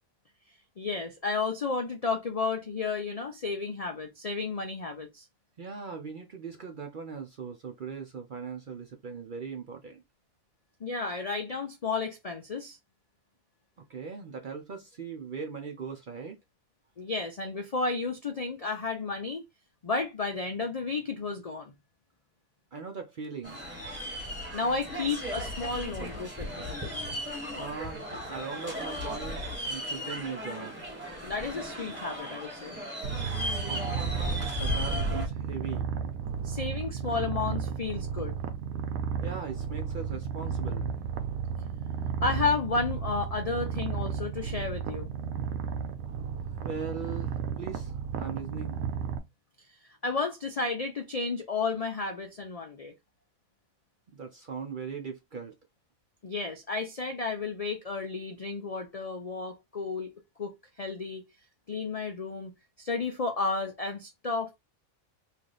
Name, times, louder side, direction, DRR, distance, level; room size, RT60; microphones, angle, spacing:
voice 1, 0.8-5.2 10.8-12.8 17.0-19.4 19.8-21.7 24.5-26.8 31.2-32.8 36.4-38.4 42.2-45.1 49.8-52.9 56.2-60.1 60.4-61.2 61.7-62.5 62.8-64.5, left 4 dB, 75° left, 0.3 m, -32 dB
voice 2, 5.6-10.0 13.9-16.4 22.7-23.6 27.5-30.8 33.6-35.9 39.2-40.9 46.5-48.8 54.1-55.6, right 5 dB, 55° right, 0.5 m, -39 dB
sound 1, 23.4-35.3, equal, 10° right, 1.4 m, -36 dB
Purr, 33.0-49.2, right 6 dB, 85° right, 1.1 m, -33 dB
3.1 x 2.6 x 3.8 m
omnidirectional pair, 1.4 m